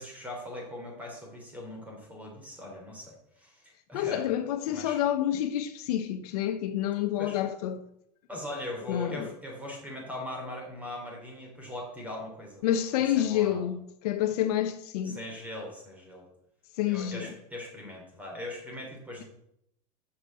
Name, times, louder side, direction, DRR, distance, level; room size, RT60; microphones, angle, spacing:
voice 1, 0.0-4.2 4.7-5.0 7.2-7.4 8.3-12.6 13.2-13.6 15.0-16.3 16.9-19.2, left 1 dB, 5° right, 3.6 m, -40 dB
voice 2, 3.9-7.8 8.9-9.3 12.6-15.2 16.8-17.3, left 11 dB, 70° left, 1.0 m, -28 dB
7.2 x 6.8 x 7.6 m
supercardioid pair, 140°, 21 cm